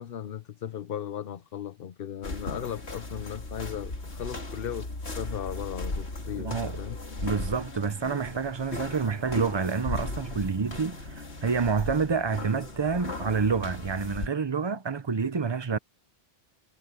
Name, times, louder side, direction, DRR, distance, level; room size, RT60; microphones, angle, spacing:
voice 1, 0.0-7.0, left 9 dB, 60° left, 0.9 m, -37 dB
sound 1, 2.2-14.3, left 2 dB, 80° left, 2.9 m, -37 dB
voice 2, 6.4-6.8 7.2-15.8, right 5 dB, 30° right, 0.7 m, -28 dB
omnidirectional pair, 1.1 m